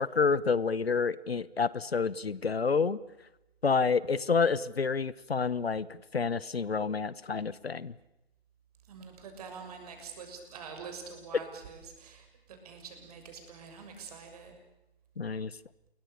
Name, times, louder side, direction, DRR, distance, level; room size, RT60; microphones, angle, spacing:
voice 1, 0.0-3.0 3.6-7.9 15.2-15.5, left 5 dB, 70° left, 20 dB, 1.1 m, -29 dB
voice 2, 8.9-12.2 12.6-14.5, right 5 dB, 35° right, 5 dB, 6.8 m, -45 dB
28.5 x 23.0 x 6.8 m, 0.92 s
figure-of-eight pair, 140°, 32 cm